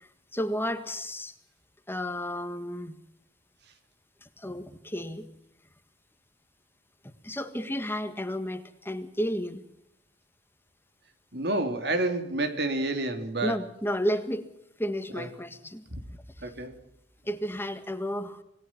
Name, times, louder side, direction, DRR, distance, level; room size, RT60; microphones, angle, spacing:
voice 1, 0.3-1.3 1.9-3.0 4.4-5.3 7.2-9.6 13.4-14.5 14.8-15.8 17.2-18.4, equal, 15° left, 8 dB, 1.7 m, -32 dB
voice 2, 11.3-13.6 15.1-15.3 15.9-16.0 16.4-16.8, right 2 dB, 65° right, 8 dB, 2.9 m, -29 dB
27.5 x 19.0 x 5.9 m, 0.77 s
head